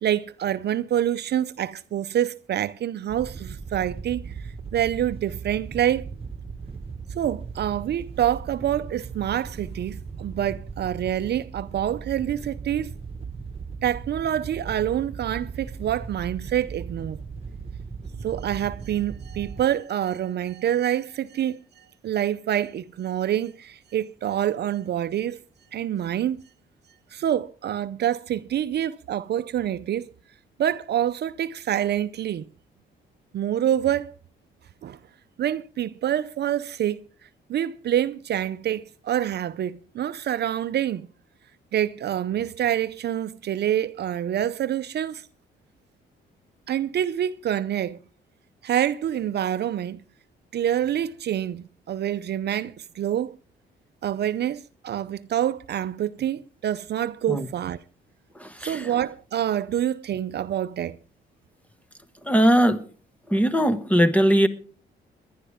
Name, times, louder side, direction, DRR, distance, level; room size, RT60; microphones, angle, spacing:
voice 1, 0.0-4.3 4.7-6.1 7.1-12.9 13.8-17.2 18.2-25.4 25.7-26.4 27.1-30.1 30.6-32.5 33.3-34.1 34.8-35.0 35.4-37.0 37.5-41.1 41.7-45.3 46.7-48.0 48.6-50.0 50.5-53.4 54.0-57.8 58.6-61.0, right 11 dB, 55° right, 0.6 m, -26 dB
Wind / Boat Water vehicle, 3.1-19.6, right 5 dB, 30° right, 1.6 m, -38 dB
voice 2, 58.3-59.0 62.2-62.9 63.3-64.5, equal, 5° left, 1.2 m, -20 dB
21.0 x 11.0 x 3.6 m
cardioid pair, 90°, 20 cm